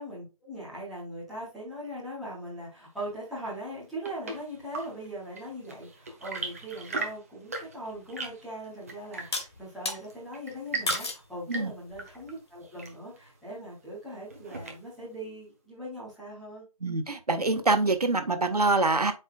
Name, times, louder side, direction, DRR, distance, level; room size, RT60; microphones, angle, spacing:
voice 1, 0.0-16.6, equal, ahead, 0.8 m, -40 dB
Chirp tweet / Engine / Tap, 3.6-15.1, right 3 dB, 25° right, 1.1 m, -40 dB
sound 1, 8.0-8.1 9.3-10.0 10.9-11.3 11.9-12.3, left 3 dB, 45° left, 1.3 m, -33 dB
voice 2, 16.8-19.1, right 3 dB, 90° right, 1.4 m, -25 dB
8.1 x 4.8 x 2.4 m
figure-of-eight pair, 170°, 19 cm